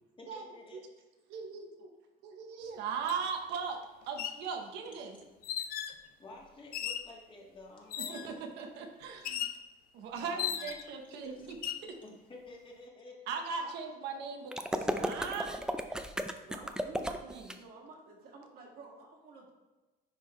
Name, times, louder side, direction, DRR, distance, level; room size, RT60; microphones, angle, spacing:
voice 1, 0.2-0.8 5.1-5.3 6.2-8.4 10.1-10.7 11.1-11.7 12.0-13.2 13.6-13.7, left 2 dB, 30° left, -2 dB, 1.7 m, -51 dB
voice 2, 1.3-1.9 2.2-3.8 4.0-5.2 8.1-9.5 9.9-11.6 11.8-11.9 13.3-14.5 14.8-15.5 17.0-17.5, right 5 dB, 85° right, 3 dB, 0.9 m, -39 dB
sound 1, 3.1-3.2 4.0-4.4 5.4-6.0 6.7-7.1 7.9-8.3 9.2-9.6 10.4-10.9 11.5-11.9, left 10 dB, 60° left, 0.5 m, -37 dB
sound 2, 14.5-17.5, right 1 dB, 5° right, 0.4 m, -34 dB
voice 3, 16.4-19.5, right 3 dB, 60° right, -2 dB, 1.9 m, -52 dB
10.0 x 3.7 x 3.1 m, 1.2 s
cardioid pair, 110°, 17 cm